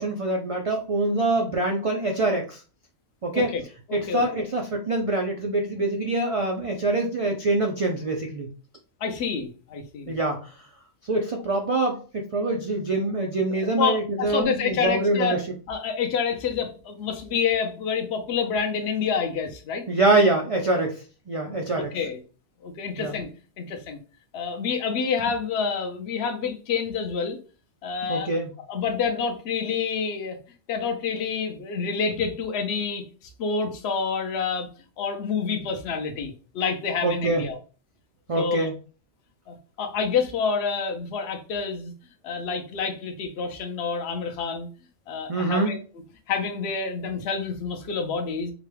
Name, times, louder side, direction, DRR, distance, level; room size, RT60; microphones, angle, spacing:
voice 1, 0.0-2.6 3.2-3.5 3.9-8.5 10.1-10.5 11.0-15.4 19.9-21.9 23.0-23.1 28.1-28.5 37.0-37.4 38.3-38.7 45.3-45.7, right 2 dB, 55° right, 1 dB, 0.3 m, -25 dB
voice 2, 3.9-4.4 9.0-10.2 13.8-15.4 15.7-19.8 21.7-22.2 22.6-23.3 23.6-24.0 24.3-27.4 27.8-28.3 28.7-30.4 30.7-34.7 35.0-37.6 38.4-38.7 39.5-41.9 42.2-44.7 45.1-45.8 46.3-48.5, left 5 dB, 60° left, 4 dB, 0.9 m, -28 dB
4.8 x 2.2 x 3.2 m, 0.37 s
omnidirectional pair, 1.3 m